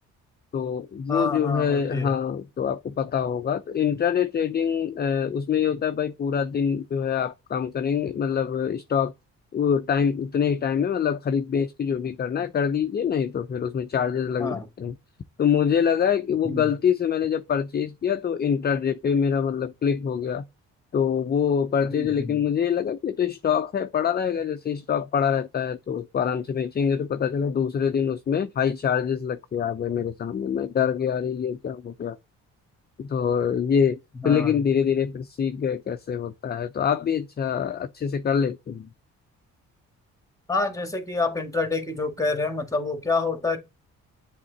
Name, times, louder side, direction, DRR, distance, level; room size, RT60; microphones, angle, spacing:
voice 1, 0.5-9.1 9.5-14.9 15.4-20.4 20.9-32.2 33.0-34.0 34.2-38.9, left 7 dB, 35° left, 0.6 m, -25 dB
voice 2, 1.1-2.2 14.4-14.7 16.4-16.6 21.9-22.4 34.2-34.5 40.5-43.6, left 3 dB, 10° left, 1.8 m, -27 dB
7.5 x 3.7 x 4.0 m
cardioid pair, 90°, 30 cm